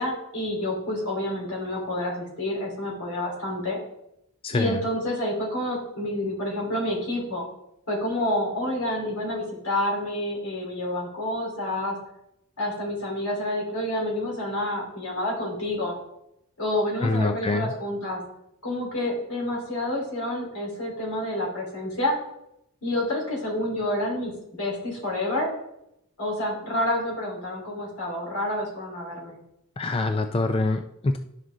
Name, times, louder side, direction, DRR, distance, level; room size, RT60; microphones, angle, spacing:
voice 1, 0.0-3.8 4.5-7.5 7.9-12.0 12.6-15.9 16.6-18.2 18.6-22.2 22.8-24.3 24.6-25.5 26.2-29.4, left 1 dB, 80° left, -3 dB, 3.7 m, -28 dB
voice 2, 4.4-4.8 17.0-17.7 29.8-31.2, left 2 dB, 25° left, 7 dB, 0.3 m, -25 dB
11.0 x 6.3 x 3.7 m, 0.81 s
head